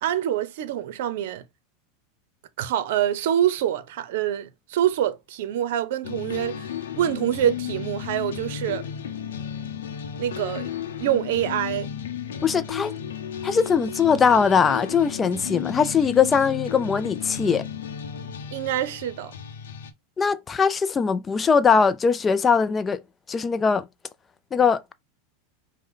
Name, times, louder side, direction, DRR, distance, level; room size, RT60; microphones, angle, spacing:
voice 1, 0.0-1.4 2.6-6.7 7.0-8.8 10.2-10.7 11.0-11.9 18.5-19.3, right 11 dB, 70° right, 0.7 m, -25 dB
sound 1, 6.0-19.9, left 8 dB, 85° left, 0.7 m, -34 dB
voice 2, 12.4-12.9 13.4-17.6 20.2-23.0 23.3-23.8 24.5-24.9, left 6 dB, 20° left, 0.4 m, -21 dB
5.1 x 2.2 x 3.8 m
hypercardioid pair, 115°, 0 cm